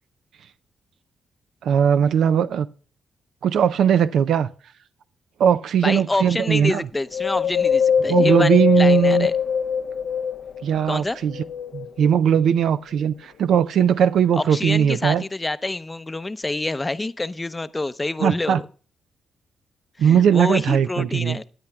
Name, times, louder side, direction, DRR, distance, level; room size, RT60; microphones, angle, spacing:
voice 1, 1.6-2.7 3.4-4.5 5.4-6.8 8.1-9.3 10.6-11.3 11.7-15.2 18.2-18.6 20.0-21.4, right 8 dB, 75° right, 0.4 m, -19 dB
voice 2, 5.8-9.3 10.9-11.2 14.3-18.6 20.0-21.4, left 2 dB, 20° left, 0.6 m, -27 dB
Wind, 7.1-10.7 11.2-12.5 13.0-13.1, left 7 dB, 70° left, 0.6 m, -22 dB
17.5 x 9.5 x 2.3 m
supercardioid pair, 55°, 0 cm